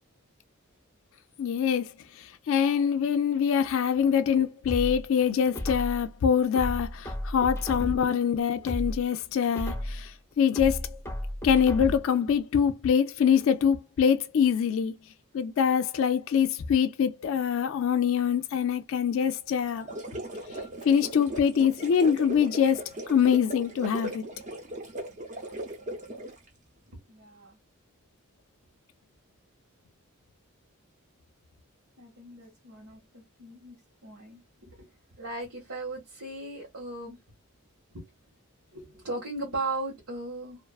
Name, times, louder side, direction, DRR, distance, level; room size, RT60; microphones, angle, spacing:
voice 1, 1.4-1.9 2.2-11.0 11.4-15.0 15.3-19.9 20.8-24.3, left 7 dB, 60° left, 0.3 m, -24 dB
sound 1, 4.7-6.1 6.6-8.2 8.6-10.1 10.6-12.2 12.6-12.7, left 1 dB, 10° left, 0.5 m, -33 dB
sound 2, 19.7-26.5, right 1 dB, 35° right, 0.6 m, -38 dB
voice 2, 27.1-27.6 32.0-33.8 34.0-34.9 35.2-37.2 37.9-38.1 38.7-40.6, right 2 dB, 85° right, 1.1 m, -37 dB
2.4 x 2.3 x 2.3 m
head